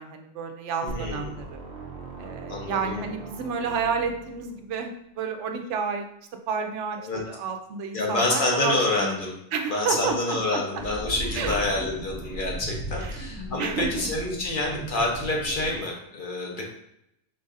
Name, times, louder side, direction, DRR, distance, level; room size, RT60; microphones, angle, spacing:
voice 1, 0.0-1.6 2.2-4.9 5.2-6.1 6.5-9.2 9.5-10.8 11.3-11.5 13.0-13.2 13.6-14.1, right 5 dB, 90° right, 5 dB, 0.9 m, -30 dB
voice 2, 0.8-1.3 2.5-3.1 7.0-7.2 7.9-9.3 9.7-16.6, left 2 dB, 50° left, -1 dB, 1.0 m, -27 dB
sound 1, 0.9-4.9, right 3 dB, 60° right, 0.8 m, -40 dB
sound 2, 10.8-15.8, right 1 dB, 10° left, 0.8 m, -36 dB
4.6 x 3.9 x 2.4 m, 0.78 s
omnidirectional pair, 1.2 m